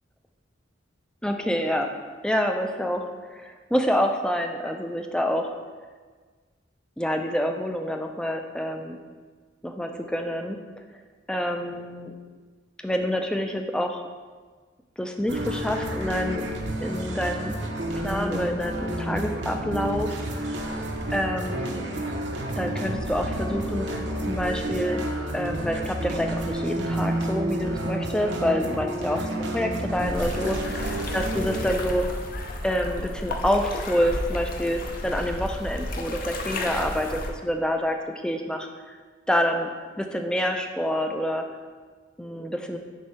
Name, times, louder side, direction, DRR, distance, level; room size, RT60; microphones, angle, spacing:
voice 1, 1.2-1.9 2.2-3.0 3.3-5.5 7.0-9.0 9.6-10.6 11.3-12.1 12.8-14.0 15.0-16.5 16.8-17.6 18.0-20.2 20.4-20.5 21.1-21.8 22.6-25.0 25.3-32.1 32.6-38.9 39.3-39.7 40.0-41.5 42.2-42.8, equal, 5° left, 4 dB, 0.3 m, -27 dB
sound 1, 15.3-31.6, right 1 dB, 65° right, 0.7 m, -30 dB
sound 2, 30.0-37.3, left 1 dB, 50° left, 0.6 m, -33 dB
6.3 x 2.7 x 5.5 m, 1.5 s
head